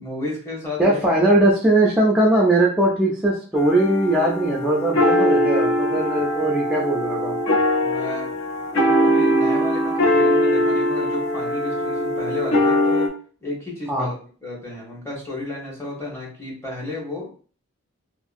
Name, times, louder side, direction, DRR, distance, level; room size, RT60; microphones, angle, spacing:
voice 1, 0.0-1.0 7.8-13.1 13.4-14.2 14.4-17.4, left 2 dB, 10° left, -4 dB, 0.9 m, -32 dB
voice 2, 0.8-7.4 13.9-14.1, right 1 dB, 5° right, -4 dB, 0.3 m, -20 dB
sound 1, 3.6-13.1, left 1 dB, 60° left, 0.5 m, -21 dB
2.6 x 2.5 x 2.4 m, 0.41 s
head